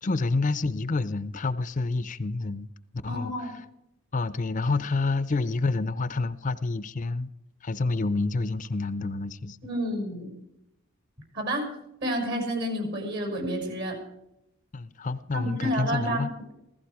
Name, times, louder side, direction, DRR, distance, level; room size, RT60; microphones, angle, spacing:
voice 1, 0.0-2.7 3.0-3.5 4.1-7.3 7.6-9.6 14.7-16.3, left 3 dB, 40° left, 0.5 m, -28 dB
voice 2, 3.1-3.5 9.6-10.4 11.3-11.7 12.0-14.0 15.3-16.5, equal, 55° right, 5.9 m, -30 dB
16.0 x 14.5 x 4.8 m
head